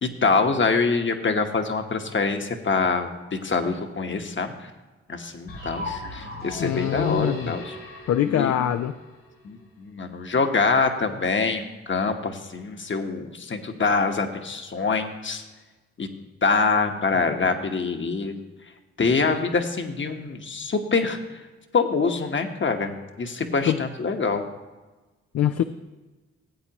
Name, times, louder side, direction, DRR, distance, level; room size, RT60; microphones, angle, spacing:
voice 1, 0.0-4.6 5.1-7.7 8.2-8.5 9.4-15.4 16.0-16.1 16.4-18.3 19.0-21.2 21.7-22.9 23.2-24.4, left 4 dB, 40° left, 6 dB, 1.2 m, -25 dB
sound 1, 5.5-9.4, left 1 dB, 80° left, 3.7 m, -36 dB
voice 2, 6.6-7.6 8.1-8.9 23.7-23.8 25.3-25.6, left 11 dB, 60° left, 9 dB, 0.5 m, -23 dB
15.5 x 8.3 x 3.0 m, 1.2 s
supercardioid pair, 55°, 29 cm